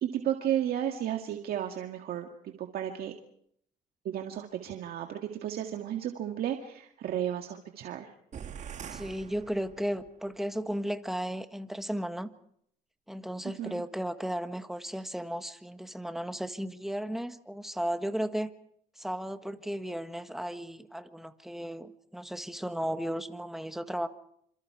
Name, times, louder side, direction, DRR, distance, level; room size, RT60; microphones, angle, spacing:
voice 1, 0.0-3.1 4.0-8.1 13.6-13.8, right 10 dB, 65° right, 4 dB, 2.0 m, -33 dB
sound 1, 8.3-10.2, right 8 dB, 45° right, 1.6 m, -44 dB
voice 2, 8.9-12.3 13.1-18.5 19.0-24.1, equal, ahead, 9 dB, 1.6 m, -35 dB
27.5 x 27.0 x 4.8 m, 0.69 s
cardioid pair, 110°, 17 cm